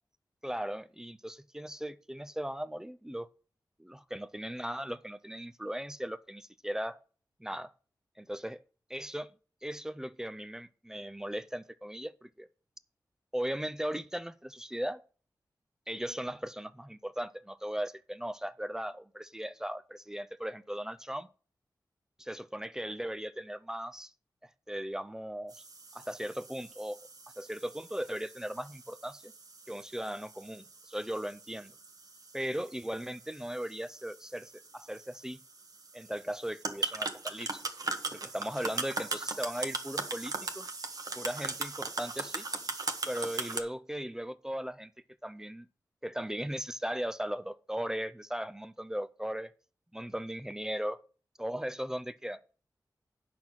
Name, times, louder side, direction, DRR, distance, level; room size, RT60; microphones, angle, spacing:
voice 1, 0.4-3.3 3.8-7.0 7.4-7.7 8.2-8.6 8.9-9.3 9.6-12.5 13.3-15.0 15.9-21.3 22.2-24.1 24.4-25.6 25.9-27.0 27.4-29.3 29.7-31.7 32.3-35.4 35.9-37.7 38.1-40.7 41.1-42.5 43.1-44.9 45.2-45.7 46.0-49.5 49.9-51.0 51.4-52.4, equal, 5° right, 0.4 m, -38 dB
sound 1, 25.5-43.6, right 3 dB, 55° right, 1.1 m, -40 dB
8.8 x 5.8 x 6.1 m
wide cardioid pair, 110°, 7 cm